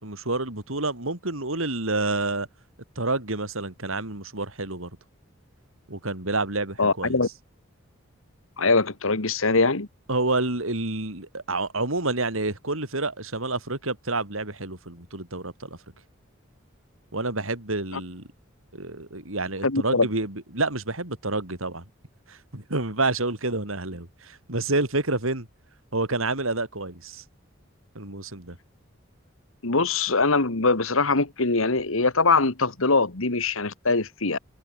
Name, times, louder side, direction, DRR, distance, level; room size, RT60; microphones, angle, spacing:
voice 1, 0.0-2.5 3.0-4.9 5.9-7.2 10.1-15.7 17.1-18.3 18.7-21.8 22.3-25.5 25.9-27.2 27.9-28.6, right 2 dB, 75° right, 4.1 m, -28 dB
voice 2, 6.8-7.3 8.6-9.9 17.9-18.0 19.6-20.1 29.6-34.4, left 3 dB, 75° left, 1.9 m, -22 dB
head